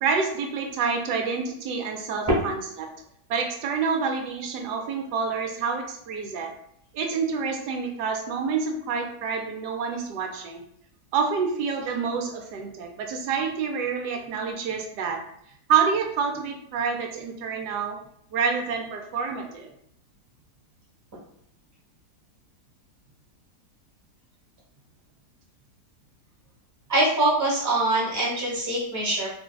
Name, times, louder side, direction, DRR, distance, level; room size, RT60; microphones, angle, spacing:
voice 1, 0.0-2.9 3.3-6.5 6.9-10.6 11.1-15.2 15.7-18.0 18.3-19.7, right 5 dB, 90° right, 3 dB, 1.2 m, -27 dB
voice 2, 26.9-29.3, right 2 dB, 15° right, -6 dB, 0.8 m, -23 dB
2.6 x 2.5 x 2.3 m, 0.70 s
omnidirectional pair, 1.7 m